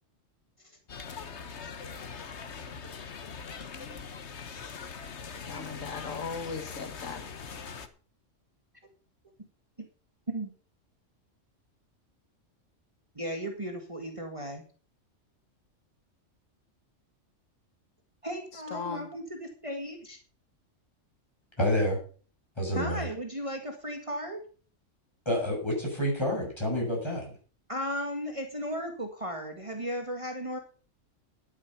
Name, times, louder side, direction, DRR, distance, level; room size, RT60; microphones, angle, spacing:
sound 1, 0.9-7.9, left 6 dB, 60° left, 1.4 m, -42 dB
voice 1, 5.5-7.3 18.5-19.1, left 5 dB, 85° left, 7 dB, 2.0 m, -38 dB
voice 2, 13.2-14.6 18.2-20.2 22.7-24.4 27.7-30.6, equal, 25° right, 4 dB, 1.8 m, -35 dB
voice 3, 21.6-22.0 22.6-23.1 25.3-27.4, equal, 20° left, -2 dB, 7.4 m, -28 dB
12.0 x 9.6 x 5.8 m, 0.40 s
omnidirectional pair, 1.3 m